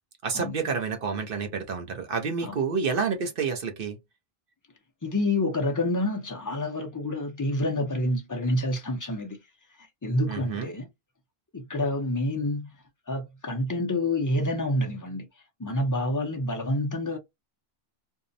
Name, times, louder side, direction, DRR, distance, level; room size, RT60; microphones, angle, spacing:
voice 1, 0.2-4.0 10.3-10.7, right 5 dB, 60° right, 0.8 m, -29 dB
voice 2, 5.0-9.4 10.0-10.9 11.5-12.8 13.1-15.3 15.6-17.2, left 1 dB, 30° left, 0.4 m, -28 dB
2.7 x 2.0 x 2.5 m
omnidirectional pair, 1.1 m